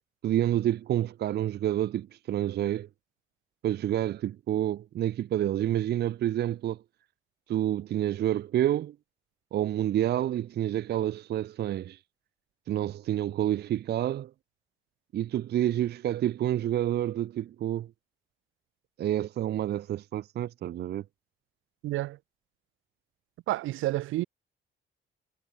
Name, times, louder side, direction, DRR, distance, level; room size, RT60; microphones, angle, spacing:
voice 1, 0.2-2.9 3.6-6.8 7.5-9.0 9.5-12.0 12.7-14.3 15.1-17.9 19.0-21.0, right 12 dB, 55° right, 0.5 m, -28 dB
voice 2, 21.8-22.2 23.5-24.2, right 17 dB, 90° right, 1.0 m, -29 dB
cardioid pair, 90°, 20 cm